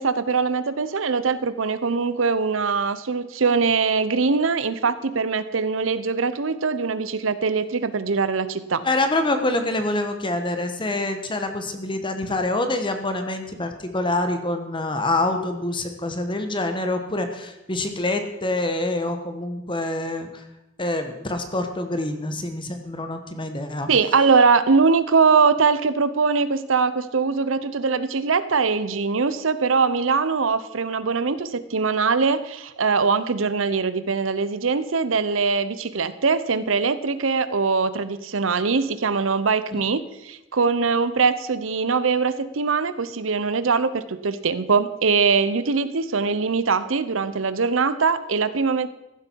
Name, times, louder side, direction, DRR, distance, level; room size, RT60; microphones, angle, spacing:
voice 1, 0.0-8.8 23.9-48.9, right 5 dB, 80° right, 14 dB, 0.8 m, -22 dB
voice 2, 8.8-20.4 20.8-23.9, left 2 dB, 25° left, 7 dB, 1.3 m, -26 dB
15.0 x 11.5 x 4.6 m, 0.96 s
head